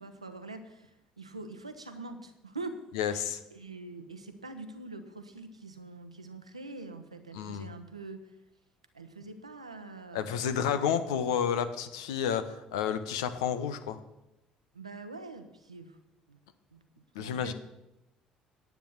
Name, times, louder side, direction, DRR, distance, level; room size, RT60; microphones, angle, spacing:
voice 1, 0.0-2.8 3.1-8.2 8.9-10.4 10.8-11.0 14.7-16.0 16.3-16.4 16.7-17.5, right 3 dB, 90° right, 8 dB, 0.9 m, -44 dB
voice 2, 2.9-3.4 7.3-7.7 10.1-14.0 17.1-17.5, left 8 dB, 70° left, 11 dB, 0.7 m, -30 dB
10.0 x 8.2 x 7.3 m, 0.90 s
figure-of-eight pair, 55°, 3 cm